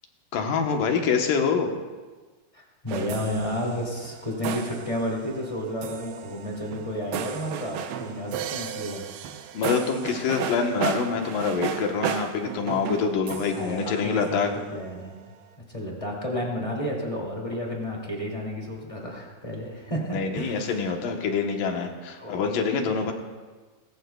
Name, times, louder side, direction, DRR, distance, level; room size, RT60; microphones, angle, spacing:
voice 1, 0.3-1.7 9.5-14.5 20.1-23.1, left 5 dB, 70° left, 3 dB, 2.6 m, -26 dB
voice 2, 2.5-9.1 13.5-15.3 15.7-20.9 22.2-22.5, equal, 10° left, -2 dB, 1.7 m, -32 dB
sound 1, 2.9-14.7, right 8 dB, 85° right, 2.8 m, -34 dB
19.5 x 17.0 x 2.3 m, 1.4 s
omnidirectional pair, 4.4 m